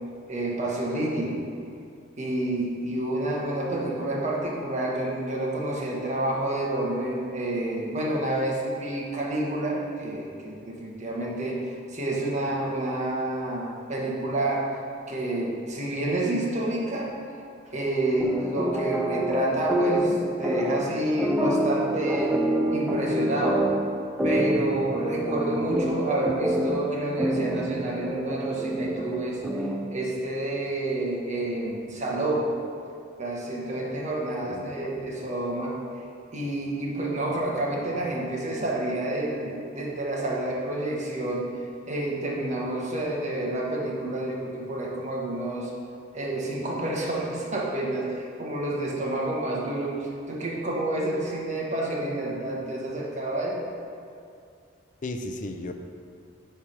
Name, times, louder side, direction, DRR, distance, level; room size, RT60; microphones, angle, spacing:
voice 1, 0.3-1.3 2.2-14.7 15.1-17.1 17.6-22.4 22.7-23.8 24.2-32.5 33.2-35.8 36.3-41.5 41.9-45.7 46.1-53.6, right 1 dB, 40° right, -3 dB, 1.3 m, -29 dB
sound 1, 18.2-30.0, right 1 dB, 5° right, 0.5 m, -27 dB
voice 2, 34.4-35.1 55.0-55.7, left 2 dB, 40° left, 6 dB, 0.5 m, -35 dB
9.3 x 3.5 x 5.9 m, 2.4 s
head